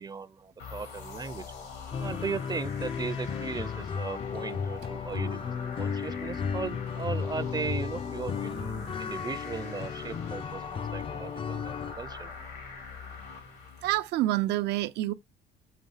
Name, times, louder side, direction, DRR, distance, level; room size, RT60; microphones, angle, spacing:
voice 1, 0.0-1.5 2.0-12.3, right 5 dB, 25° right, 0.5 m, -37 dB
sound 1, 0.6-14.1, left 5 dB, 80° left, 2.4 m, -43 dB
sound 2, 1.9-11.9, left 6 dB, 35° left, 0.4 m, -34 dB
voice 2, 13.8-15.1, right 16 dB, 80° right, 0.6 m, -27 dB
7.5 x 3.2 x 5.5 m
cardioid pair, 110°, 17 cm